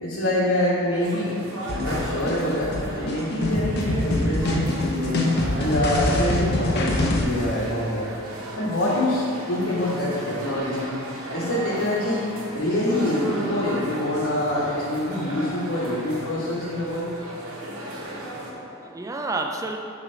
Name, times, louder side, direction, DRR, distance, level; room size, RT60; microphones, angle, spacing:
voice 1, 0.0-1.3 1.7-5.3 5.6-8.1 8.6-10.9 11.3-12.2 12.5-17.1, left 1 dB, 65° left, -9 dB, 1.4 m, -25 dB
sound 1, 1.0-18.5, right 1 dB, 80° right, 1.3 m, -36 dB
sound 2, 1.7-7.2, left 1 dB, 50° left, 0.8 m, -25 dB
voice 2, 17.5-19.8, right 2 dB, 15° right, 3 dB, 0.4 m, -33 dB
9.8 x 3.4 x 5.5 m, 2.5 s
head